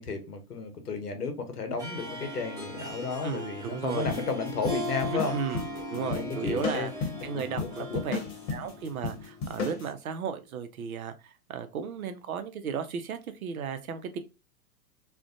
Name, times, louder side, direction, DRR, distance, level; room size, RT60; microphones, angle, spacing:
voice 1, 0.0-5.3 5.9-6.9 7.3-8.0, left 4 dB, 80° left, 0.8 m, -33 dB
Harp, 1.8-9.5, left 1 dB, 10° right, 0.5 m, -39 dB
voice 2, 3.2-4.2 5.1-5.6 5.9-8.2 8.5-14.2, right 6 dB, 65° right, 0.6 m, -35 dB
sound 1, 4.1-9.9, left 5 dB, 40° left, 0.9 m, -35 dB
2.4 x 2.2 x 2.5 m
figure-of-eight pair, 110°, 46 cm